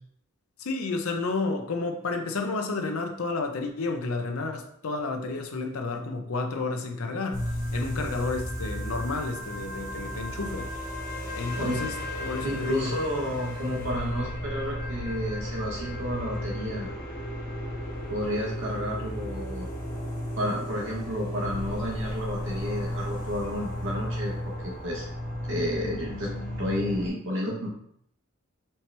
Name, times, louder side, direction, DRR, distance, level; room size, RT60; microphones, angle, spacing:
voice 1, 0.6-10.7 11.3-11.9 12.2-13.0, left 3 dB, 80° left, 4 dB, 0.6 m, -31 dB
sound 1, 7.3-27.1, equal, 45° left, 1.7 m, -34 dB
voice 2, 12.4-16.9 18.1-19.7 20.4-25.1 25.5-26.3 26.6-27.7, equal, 65° right, -3 dB, 1.0 m, -31 dB
4.4 x 2.9 x 3.3 m, 0.70 s
head